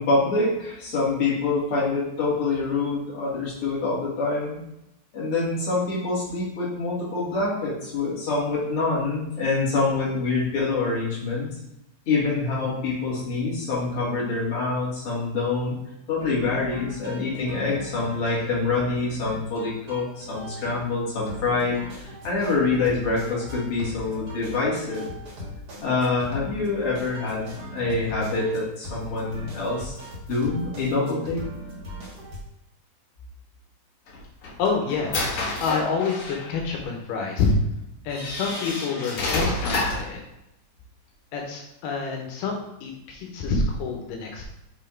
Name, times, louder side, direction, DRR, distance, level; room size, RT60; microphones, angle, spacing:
voice 1, 0.0-4.6 5.1-11.5 12.1-15.8 16.1-21.8 22.2-25.1 25.8-29.9 30.3-31.4, left 3 dB, 45° left, -7 dB, 2.8 m, -26 dB
sound 1, 16.2-32.4, equal, 40° right, 1.8 m, -40 dB
sound 2, 34.1-36.5 37.4-37.5 38.1-40.1, left 2 dB, 60° left, 1.7 m, -29 dB
voice 2, 34.6-35.1 35.6-37.5 38.0-40.2 41.3-42.5 42.8-44.4, left 4 dB, 85° left, 0 dB, 2.7 m, -27 dB
7.3 x 3.3 x 4.4 m, 0.86 s
omnidirectional pair, 3.8 m